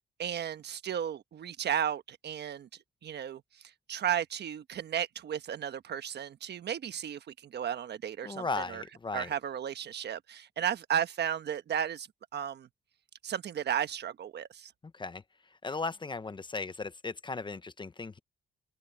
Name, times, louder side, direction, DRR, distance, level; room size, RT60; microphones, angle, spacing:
voice 1, 0.2-2.7 3.0-3.6 3.9-8.8 9.1-12.1 12.3-12.7 13.2-14.7, right 9 dB, 55° right, 1.3 m, -34 dB
voice 2, 8.2-9.3 14.9-15.2 15.6-18.2, left 3 dB, 25° left, 0.8 m, -36 dB
open air
cardioid pair, 90°, 20 cm